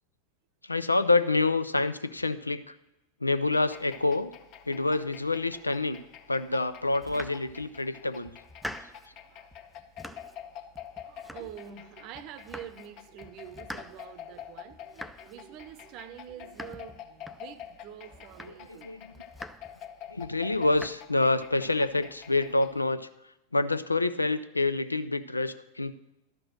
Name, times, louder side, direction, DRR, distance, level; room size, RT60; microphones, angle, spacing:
voice 1, 0.6-2.7 3.2-4.3 4.7-6.0 6.3-8.3 18.7-19.0 20.1-23.1 23.5-25.9, left 2 dB, 80° left, 13 dB, 0.5 m, -27 dB
sound 1, 3.5-22.8, left 9 dB, 40° left, 0.8 m, -48 dB
Domestic sounds home sounds, 6.9-7.9 8.3-9.2 9.5-10.5 10.8-11.9 12.1-12.9 13.2-17.8 18.1-18.8 19.1-19.9 20.2-20.9, equal, ahead, 0.4 m, -45 dB
voice 2, 11.0-19.0 19.7-19.8, right 10 dB, 40° right, 12 dB, 0.8 m, -46 dB
12.0 x 6.0 x 6.4 m, 0.90 s
figure-of-eight pair, 90°, 0 cm